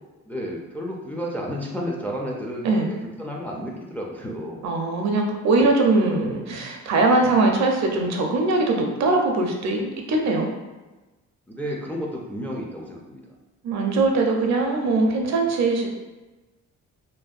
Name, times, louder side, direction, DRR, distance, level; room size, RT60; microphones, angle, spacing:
voice 1, 0.2-4.6 11.5-13.2, equal, 5° left, -2 dB, 0.3 m, -32 dB
voice 2, 4.6-10.5 13.6-15.9, right 3 dB, 65° right, 2 dB, 0.5 m, -21 dB
2.6 x 2.1 x 2.3 m, 1.1 s
cardioid pair, 90°, 30 cm